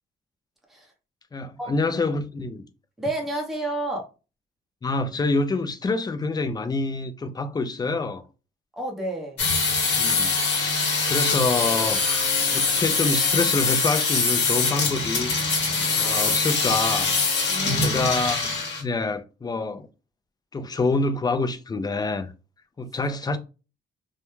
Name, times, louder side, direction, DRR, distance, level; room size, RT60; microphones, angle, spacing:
voice 1, 1.3-2.6 4.8-8.2 10.0-15.3 16.0-17.1 17.8-19.9 20.5-22.3 22.8-23.4, left 3 dB, 20° left, 0.4 m, -27 dB
voice 2, 3.0-4.1 8.8-9.4 17.5-18.1, right 1 dB, ahead, 0.8 m, -30 dB
sound 1, 9.4-18.8, left 4 dB, 60° left, 0.9 m, -23 dB
2.2 x 2.1 x 3.0 m
cardioid pair, 90°, 20 cm